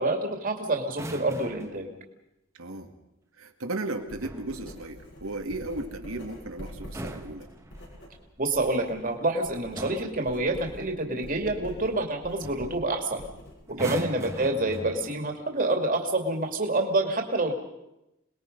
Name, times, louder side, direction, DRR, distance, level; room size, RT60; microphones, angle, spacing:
voice 1, 0.0-1.9 8.4-13.2 13.8-17.5, right 2 dB, 40° right, 2 dB, 2.6 m, -27 dB
sound 1, 0.9-1.8 3.9-4.6 6.7-8.1 9.1-9.4 9.7-10.2 11.9-12.1 12.4-12.7 13.7-15.3 16.3-16.5, right 1 dB, 15° right, 1.3 m, -40 dB
voice 2, 2.5-2.9 3.4-7.5 13.7-14.0, right 2 dB, 85° right, 5 dB, 2.2 m, -35 dB
Writing, 4.0-9.0 9.3-13.9, equal, 65° left, 7.2 m, -45 dB
27.5 x 20.5 x 5.4 m, 0.91 s
head